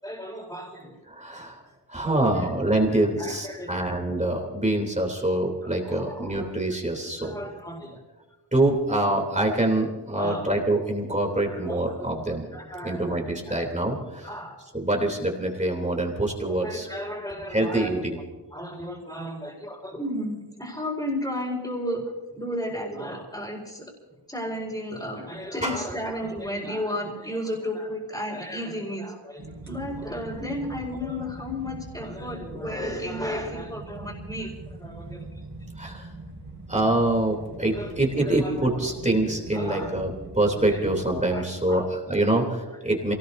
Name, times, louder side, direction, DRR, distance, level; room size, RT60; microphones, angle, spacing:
voice 1, 0.0-1.0 2.0-4.0 5.6-6.5 7.2-8.0 10.1-10.5 11.4-13.2 13.4-13.5 14.2-14.5 16.5-17.9 18.5-22.0 22.3-23.8 24.3-34.5 34.8-35.4 37.7-37.9 38.2-38.9 39.5-39.9 40.6-40.8 41.3-41.9, equal, 10° left, -6 dB, 4.5 m, -34 dB
voice 2, 1.1-1.6 1.9-7.4 8.5-12.4 12.8-14.3 14.7-16.9 17.5-18.2 25.6-25.7 35.8-36.0 36.7-43.1, right 1 dB, 15° right, 1 dB, 3.2 m, -25 dB
sound 1, 29.4-41.2, right 2 dB, 45° right, 5.0 m, -41 dB
28.0 x 19.0 x 2.7 m, 1.2 s
wide cardioid pair, 95°, 40 cm